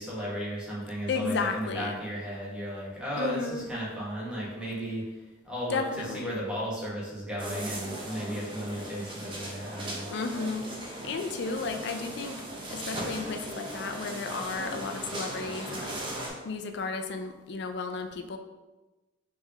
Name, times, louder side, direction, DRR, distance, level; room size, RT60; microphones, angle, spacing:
voice 1, 0.0-10.1, equal, 5° right, -7 dB, 1.2 m, -35 dB
voice 2, 1.1-2.0 3.2-3.7 5.7-6.4 10.1-12.4 12.7-16.0 16.4-18.4, left 4 dB, 55° left, 6 dB, 0.4 m, -33 dB
sound 1, 7.4-16.3, right 1 dB, 25° right, 0.8 m, -38 dB
4.6 x 3.3 x 3.4 m, 1.1 s
head